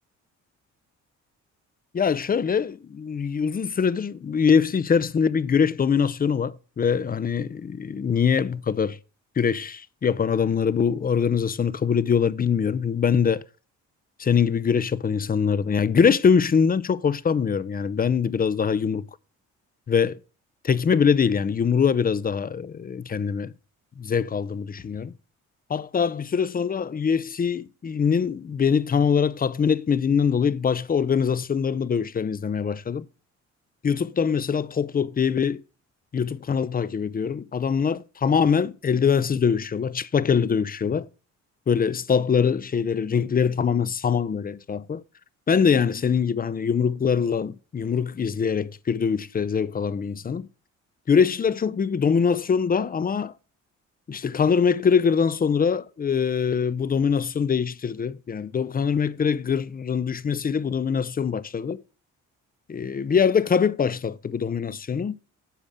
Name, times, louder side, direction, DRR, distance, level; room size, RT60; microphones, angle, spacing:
voice 1, 1.9-9.0 9.4-13.4 14.2-19.0 19.9-20.2 20.6-23.5 24.0-25.1 25.7-33.0 33.8-35.6 36.1-41.1 41.7-45.0 45.5-50.5 51.1-53.3 54.1-61.8 62.7-65.2, left 6 dB, 30° left, 0.6 m, -23 dB
10.0 x 7.1 x 3.6 m
cardioid pair, 90°, 30 cm